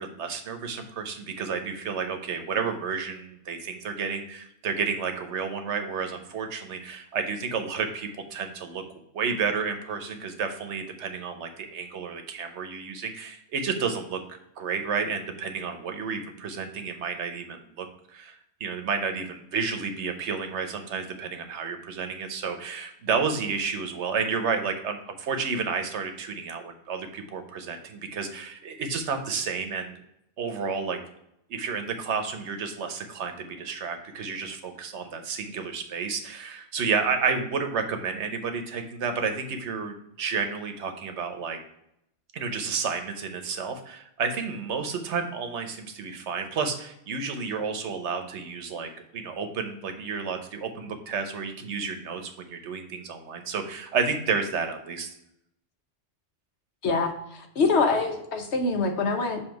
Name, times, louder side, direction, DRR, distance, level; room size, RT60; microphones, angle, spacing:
voice 1, 0.0-8.8 9.1-14.2 14.6-30.0 30.4-31.0 31.5-41.6 42.3-55.1, right 5 dB, 90° right, 6 dB, 1.1 m, -31 dB
voice 2, 56.8-59.4, left 3 dB, 75° left, 4 dB, 1.1 m, -25 dB
7.2 x 2.8 x 4.6 m, 0.77 s
omnidirectional pair, 1.1 m